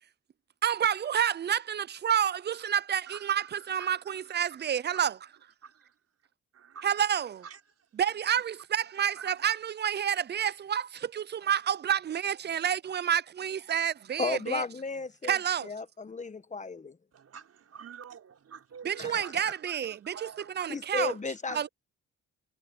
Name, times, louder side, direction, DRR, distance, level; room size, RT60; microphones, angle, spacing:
voice 1, 0.6-5.2 6.8-7.4 8.0-14.6 15.3-15.7 18.8-20.3 20.6-21.1 21.5-21.7, right 9 dB, 35° right, 0.6 m, -29 dB
voice 2, 3.1-4.4 4.9-5.0 5.6-6.0 6.5-7.1 7.4-7.9 8.8-9.5 17.1-21.1 21.5-21.7, right 7 dB, 55° right, 6.2 m, -49 dB
voice 3, 14.2-15.4 15.6-17.0 19.0-19.4 20.7-21.6, left 4 dB, 25° left, 1.4 m, -34 dB
cardioid pair, 90°, 30 cm